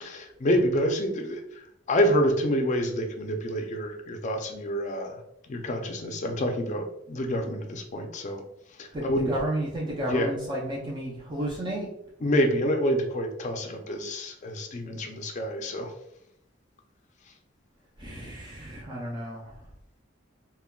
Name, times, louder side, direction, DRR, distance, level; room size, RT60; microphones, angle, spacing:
voice 1, 0.0-1.4 1.9-5.2 5.5-8.4 8.8-9.3 10.1-10.3 12.2-15.9, equal, 40° left, 4 dB, 0.4 m, -27 dB
voice 2, 8.9-11.9 18.0-19.5, right 1 dB, 25° right, -4 dB, 0.4 m, -32 dB
3.5 x 2.2 x 2.2 m, 0.79 s
head